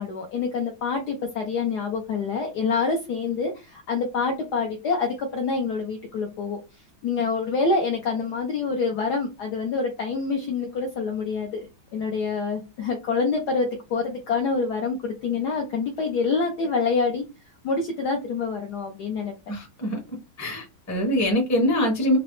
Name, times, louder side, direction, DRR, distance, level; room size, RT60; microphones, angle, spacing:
voice 1, 0.0-6.6 7.0-11.6 11.9-17.2 17.6-19.3, left 4 dB, 70° left, 2 dB, 1.0 m, -26 dB
voice 2, 19.5-20.0 20.4-22.2, equal, 15° left, 0 dB, 0.6 m, -23 dB
3.8 x 2.0 x 3.1 m, 0.27 s
omnidirectional pair, 2.3 m